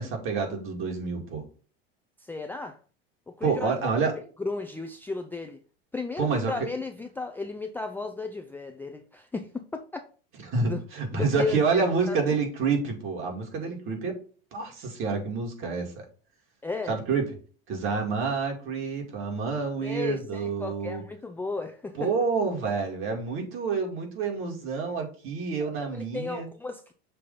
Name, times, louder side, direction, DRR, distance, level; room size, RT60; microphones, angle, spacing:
voice 1, 0.0-1.4 3.4-4.1 6.2-6.5 10.5-14.2 14.5-15.9 16.9-17.3 17.7-21.0 22.0-26.5, right 4 dB, 45° right, 2.2 m, -28 dB
voice 2, 2.2-2.8 3.3-3.7 4.4-5.6 5.9-10.1 10.6-10.8 11.1-12.3 16.6-16.9 19.8-22.1 25.6-26.8, left 3 dB, 5° left, 0.4 m, -34 dB
6.7 x 2.7 x 5.3 m
supercardioid pair, 125°, 30 cm